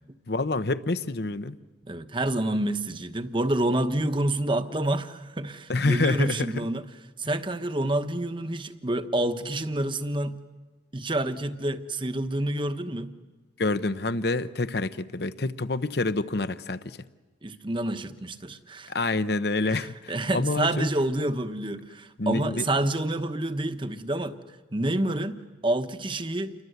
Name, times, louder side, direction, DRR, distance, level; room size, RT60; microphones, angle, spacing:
voice 1, 0.3-1.6 5.7-6.7 13.6-17.0 18.9-20.9 22.2-22.7, left 2 dB, 55° left, 0.8 m, -27 dB
voice 2, 1.8-6.8 7.2-10.4 10.9-13.1 17.4-18.9 19.7-24.4 24.7-25.4 25.6-26.5, right 1 dB, 25° right, 1.1 m, -28 dB
29.0 x 23.5 x 8.1 m
head